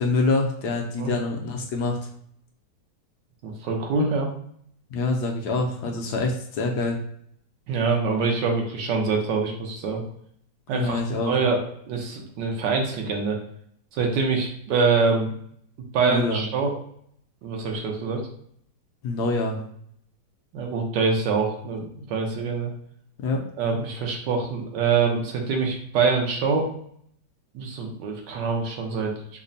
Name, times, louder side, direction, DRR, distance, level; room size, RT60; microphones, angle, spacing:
voice 1, 0.0-2.0 4.9-7.0 10.7-11.3 16.1-16.4 19.0-19.6 23.2-23.4, left 3 dB, 70° left, 2 dB, 1.1 m, -25 dB
voice 2, 3.4-4.3 7.7-10.0 10.7-11.0 11.3-13.4 13.9-15.3 15.9-16.7 17.4-18.2 20.5-22.7 23.6-26.7 27.5-29.1, right 4 dB, 80° right, 1 dB, 1.4 m, -25 dB
5.2 x 2.1 x 2.6 m, 0.65 s
omnidirectional pair, 1.9 m